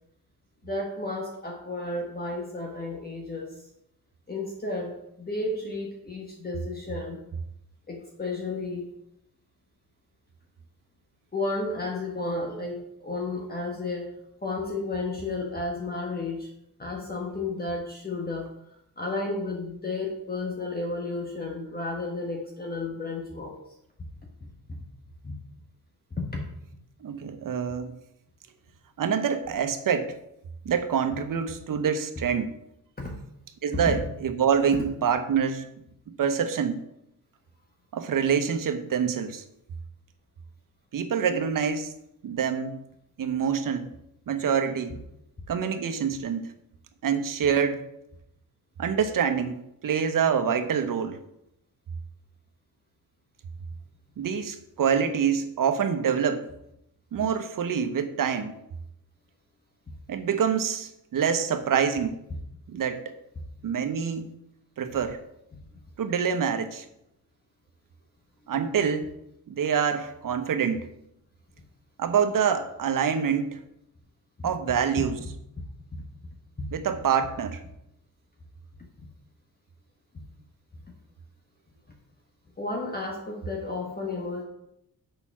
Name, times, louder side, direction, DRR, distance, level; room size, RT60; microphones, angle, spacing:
voice 1, 0.6-3.5 4.3-7.2 7.9-8.9 11.3-14.1 14.4-16.5 16.8-18.5 19.0-23.6 24.4-24.5 25.2-25.4 26.2-26.4 33.0-33.1 33.9-34.0 34.7-34.8 74.4-74.5 76.6-76.7 79.0-79.1 82.6-84.4, left 2 dB, 25° left, -1 dB, 1.6 m, -32 dB
voice 2, 27.0-27.9 29.0-30.1 30.6-32.6 33.6-35.7 36.1-36.8 37.9-39.4 40.9-41.9 42.2-42.8 43.2-43.9 44.3-45.0 45.5-46.5 47.0-47.8 48.8-51.2 54.2-56.5 57.1-58.6 60.1-62.2 62.7-63.1 63.6-64.3 64.8-65.2 66.0-66.8 68.5-69.1 69.5-70.8 72.0-73.6 74.4-75.2 76.7-77.6, right 7 dB, 60° right, 8 dB, 1.1 m, -26 dB
6.9 x 5.7 x 6.0 m, 0.80 s
cardioid pair, 90°, 36 cm